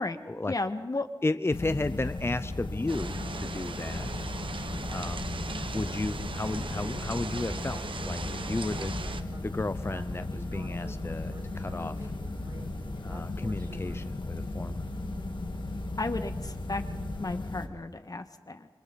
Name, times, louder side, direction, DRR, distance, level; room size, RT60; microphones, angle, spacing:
voice 1, 0.5-1.1 16.0-16.8 17.2-18.7, left 2 dB, 45° left, 8 dB, 1.7 m, -33 dB
voice 2, 1.2-4.1 4.9-5.4 5.7-9.0 9.4-12.1 13.0-14.7, left 2 dB, 30° left, 12 dB, 0.7 m, -33 dB
sound 1, 1.5-17.7, left 2 dB, 65° left, 2.1 m, -36 dB
sound 2, 2.9-9.2, right 4 dB, 75° right, 1.1 m, -39 dB
Speech synthesizer, 5.7-14.0, right 2 dB, 50° right, 4.3 m, -50 dB
29.0 x 26.0 x 4.2 m, 1.2 s
wide cardioid pair, 60°, 9 cm